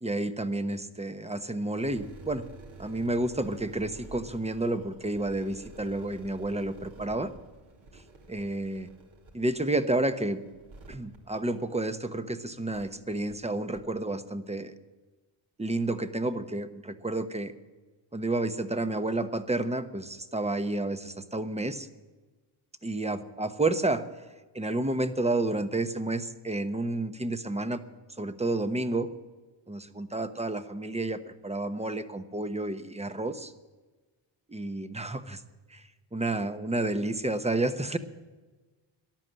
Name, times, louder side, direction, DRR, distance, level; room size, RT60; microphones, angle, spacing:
voice 1, 0.0-2.5 2.8-7.3 7.9-8.0 8.3-8.9 9.3-10.4 10.9-14.7 15.6-17.5 18.1-21.9 22.8-24.0 24.5-27.8 28.2-29.1 29.7-33.5 34.5-35.4 35.7-38.0, right 2 dB, 15° right, 10 dB, 1.0 m, -30 dB
sound 1, 1.8-12.1 12.7-12.8 13.3-13.4 13.7-13.8, right 2 dB, 65° right, 2.7 m, -50 dB
13.5 x 11.0 x 7.6 m, 1.2 s
cardioid pair, 85°, 50 cm